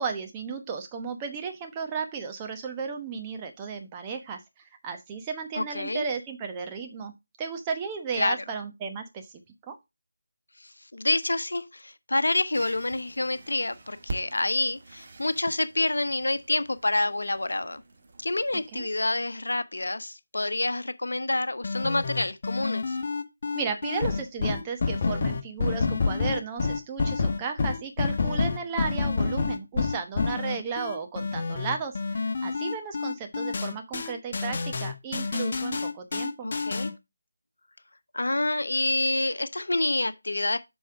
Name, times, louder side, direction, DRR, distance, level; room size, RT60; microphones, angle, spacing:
voice 1, 0.0-4.4 4.8-7.1 7.4-9.3 9.7-9.8 18.7-18.9 23.5-36.5, right 5 dB, 15° right, 1.1 m, -34 dB
voice 2, 5.6-6.1 8.2-8.4 10.9-17.8 18.2-23.0 36.4-36.9 38.1-40.6, left 2 dB, 75° left, 0.9 m, -27 dB
sound 1, 12.5-18.8, right 2 dB, 40° right, 1.7 m, -44 dB
sound 2, 21.6-36.9, left 4 dB, 40° left, 1.3 m, -28 dB
7.6 x 5.6 x 3.5 m
figure-of-eight pair, 160°, 0 cm